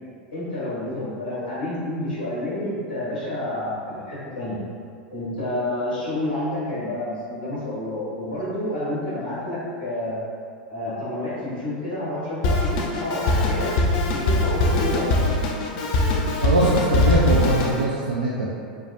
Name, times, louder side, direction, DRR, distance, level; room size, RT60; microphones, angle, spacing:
voice 1, 0.3-4.6 5.1-10.2 10.7-13.7 14.1-15.3, left 1 dB, 90° left, -10 dB, 1.2 m, -29 dB
Drum kit, 12.4-17.8, left 2 dB, 55° left, 0.4 m, -22 dB
voice 2, 16.4-18.5, right 2 dB, 85° right, -5 dB, 0.3 m, -21 dB
3.1 x 2.0 x 2.5 m, 2.3 s
hypercardioid pair, 90°, 5 cm